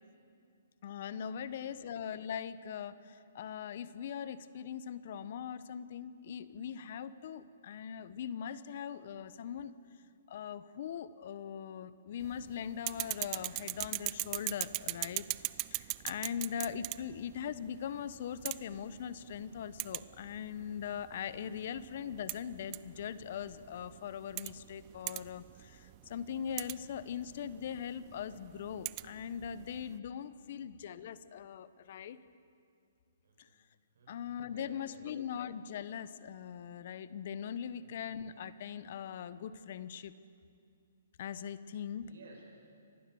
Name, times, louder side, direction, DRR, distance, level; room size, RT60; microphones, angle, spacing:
voice 1, 0.8-9.8 10.3-15.2 15.6-32.2 33.4-33.5 34.1-40.1 41.2-42.1, left 8 dB, 55° left, 15 dB, 0.9 m, -41 dB
voice 2, 1.4-1.8 16.2-16.7 17.0-17.2 26.8-27.2 30.6-30.7 33.2-33.6 33.9-35.1 37.7-38.0 41.9-42.5, right 3 dB, 70° right, 0 dB, 8.0 m, -59 dB
sound 1, 12.2-30.0, right 22 dB, 30° right, 0.5 m, -42 dB
25.0 x 18.5 x 7.0 m, 2.4 s
hypercardioid pair, 145°, 0 cm